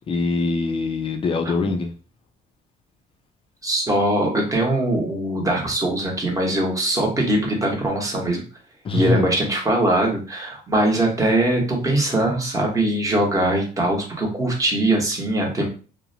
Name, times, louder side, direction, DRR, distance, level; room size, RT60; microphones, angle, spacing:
voice 1, 0.1-1.9 8.8-9.3, left 3 dB, 35° left, 4 dB, 0.4 m, -23 dB
voice 2, 3.6-8.4 8.9-15.7, right 1 dB, 20° right, 0 dB, 0.9 m, -21 dB
2.6 x 2.1 x 2.6 m, 0.38 s
cardioid pair, 110°, 17 cm